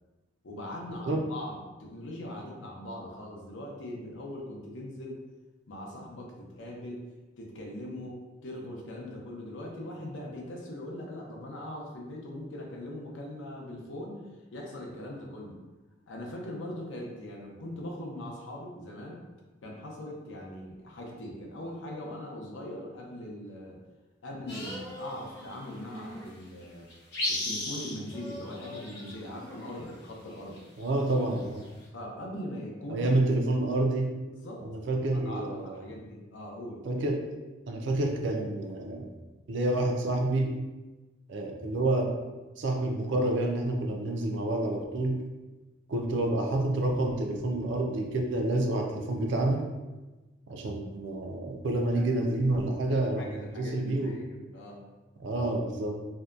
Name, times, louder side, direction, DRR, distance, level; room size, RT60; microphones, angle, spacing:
voice 1, 0.4-5.2 5.7-7.0 7.4-14.2 14.5-15.6 16.1-19.2 19.6-23.8 24.2-26.9 27.3-30.6 31.9-33.1 34.3-36.8 51.9-52.0 52.9-54.8, left 1 dB, 80° left, -1 dB, 0.5 m, -41 dB
sound 1, 24.5-25.5 25.9-26.0 26.6-26.7 26.9-29.3 30.3-31.8, left 1 dB, 60° left, 0.9 m, -35 dB
sound 2, 24.5-26.3 28.1-30.0, equal, 10° left, 0.5 m, -45 dB
voice 2, 30.8-31.7 32.9-34.2 34.6-35.8 36.9-37.3 37.7-39.1 39.5-40.6 41.3-42.1 42.6-45.2 45.9-49.7 50.5-54.2 55.2-56.1, right 2 dB, 70° right, 2 dB, 0.4 m, -28 dB
2.7 x 2.1 x 2.3 m, 1.2 s
head